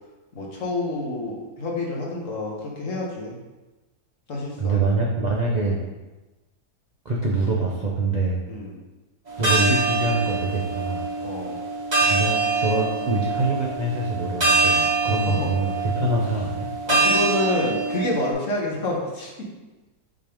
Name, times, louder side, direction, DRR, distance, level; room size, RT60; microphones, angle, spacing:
voice 1, 0.3-3.4 4.3-4.8 5.6-5.9 8.5-8.8 11.2-11.6 15.1-15.5 16.9-19.5, left 2 dB, 55° left, -2 dB, 1.5 m, -28 dB
voice 2, 4.6-5.8 7.0-8.4 9.4-11.1 12.0-16.7, right 2 dB, 50° right, -3 dB, 0.5 m, -24 dB
sound 1, 9.3-18.3, right 3 dB, 30° right, 1.2 m, -24 dB
5.8 x 5.1 x 3.5 m, 1.1 s
omnidirectional pair, 1.8 m